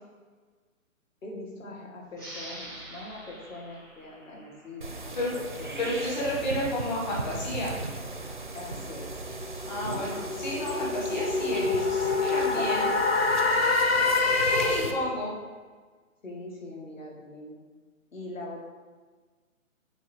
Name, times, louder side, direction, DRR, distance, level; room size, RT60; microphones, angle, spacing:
voice 1, 1.2-6.7 8.5-9.2 10.0-10.3 16.2-17.6 18.1-18.6, left 2 dB, 70° left, -1 dB, 1.9 m, -42 dB
sound 1, 2.1-5.4, right 1 dB, 15° left, 0.7 m, -45 dB
sound 2, 4.8-14.9, right 2 dB, 40° right, 0.4 m, -37 dB
voice 2, 5.8-7.8 9.7-12.9 14.4-15.3, left 1 dB, 35° left, -5 dB, 1.5 m, -31 dB
sound 3, 9.0-15.1, left 3 dB, 50° left, 0.8 m, -26 dB
9.0 x 3.4 x 4.4 m, 1.4 s
hypercardioid pair, 175°, 41 cm